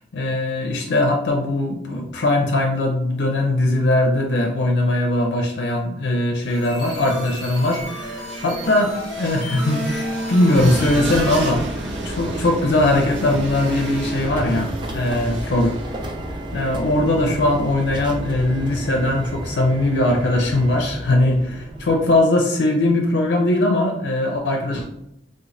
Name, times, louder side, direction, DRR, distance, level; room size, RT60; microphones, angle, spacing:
voice 1, 0.1-11.6 12.0-15.7 16.5-24.8, left 1 dB, 75° left, 2 dB, 0.5 m, -20 dB
sound 1, 6.3-11.4, left 1 dB, 25° left, 0.9 m, -36 dB
sound 2, 6.4-16.3, right 1 dB, 85° right, 0.6 m, -32 dB
sound 3, 10.5-22.1, right 1 dB, 25° right, 0.4 m, -31 dB
3.7 x 2.1 x 3.2 m, 0.79 s
head